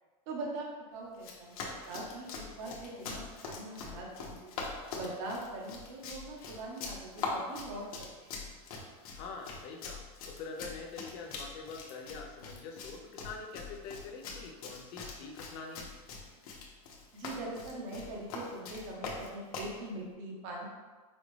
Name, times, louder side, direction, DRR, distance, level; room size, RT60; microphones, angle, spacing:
voice 1, 0.3-4.5 4.9-7.9 8.3-8.4 17.1-20.7, right 2 dB, 50° right, -2 dB, 1.0 m, -42 dB
Run, 1.1-19.8, left 4 dB, 75° left, 1.0 m, -43 dB
voice 2, 9.0-15.9, left 4 dB, 45° left, 2 dB, 0.5 m, -45 dB
5.1 x 2.4 x 3.2 m, 1.3 s
supercardioid pair, 160°, 19 cm